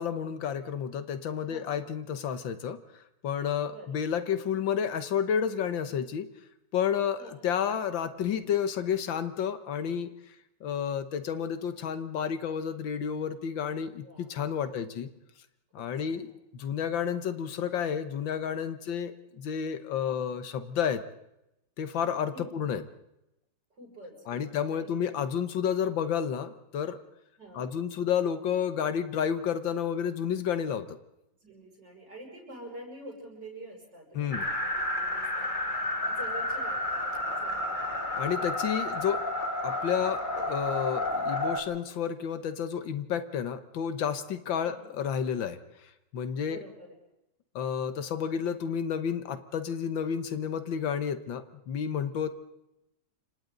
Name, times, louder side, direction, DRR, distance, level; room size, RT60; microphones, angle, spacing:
voice 1, 0.0-2.8 3.2-6.3 6.7-10.1 10.6-15.1 15.7-16.3 16.5-21.0 21.8-22.8 24.3-27.0 27.5-30.9 34.1-34.5 38.2-39.2 39.6-46.6 47.6-52.3, left 8 dB, 85° left, 10 dB, 1.9 m, -31 dB
voice 2, 1.4-1.8 3.7-4.0 7.2-7.4 14.0-14.4 14.6-14.9 15.8-16.3 22.3-22.5 23.7-25.0 27.4-27.7 31.4-35.5 36.1-37.8 44.6-44.9 46.4-46.9, right 1 dB, 65° right, -1 dB, 7.6 m, -47 dB
sound 1, 34.3-41.6, left 1 dB, 25° left, 2.6 m, -31 dB
29.5 x 26.5 x 4.0 m, 0.86 s
omnidirectional pair, 2.0 m